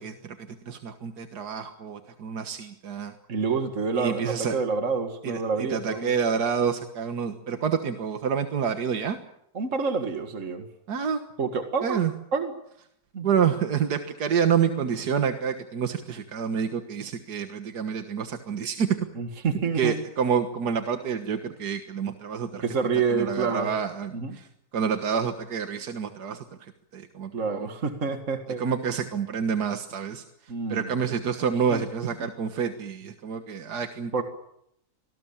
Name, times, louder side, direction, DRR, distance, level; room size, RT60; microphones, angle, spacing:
voice 1, 0.0-3.1 4.0-4.6 5.2-9.2 10.9-11.2 11.8-12.1 13.2-19.0 19.7-22.7 23.1-24.5 24.7-27.7 28.6-34.2, right 7 dB, 85° right, 7 dB, 2.0 m, -28 dB
voice 2, 3.3-6.1 9.5-10.7 11.4-12.0 12.3-12.5 13.1-13.3 19.2-20.0 22.6-23.7 24.1-24.4 27.3-28.6 30.5-30.9 31.7-31.8 34.1-34.2, right 5 dB, 50° right, 6 dB, 2.2 m, -27 dB
25.0 x 19.5 x 8.8 m, 0.75 s
omnidirectional pair, 1.7 m